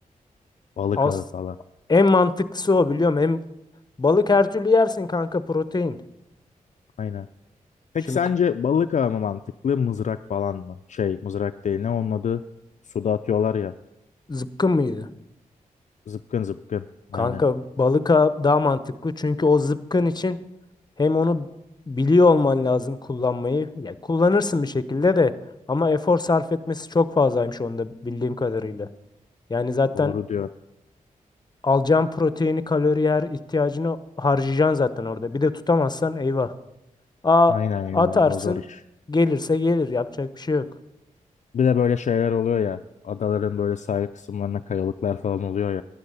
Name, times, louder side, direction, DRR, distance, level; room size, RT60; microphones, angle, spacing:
voice 1, 0.8-1.5 7.0-7.3 7.9-12.4 12.9-13.7 16.1-16.9 17.1-17.4 29.9-30.5 37.5-38.8 41.5-45.8, left 7 dB, 55° left, 9 dB, 0.4 m, -25 dB
voice 2, 1.9-3.4 4.0-6.0 8.1-8.2 14.3-15.1 17.1-20.4 21.0-21.5 21.9-25.3 25.7-28.9 29.5-30.1 31.6-36.5 37.2-37.5 37.9-38.6 39.1-40.6, left 3 dB, 30° left, 14 dB, 0.8 m, -21 dB
11.5 x 10.0 x 5.6 m, 0.88 s
cardioid pair, 50°, 15 cm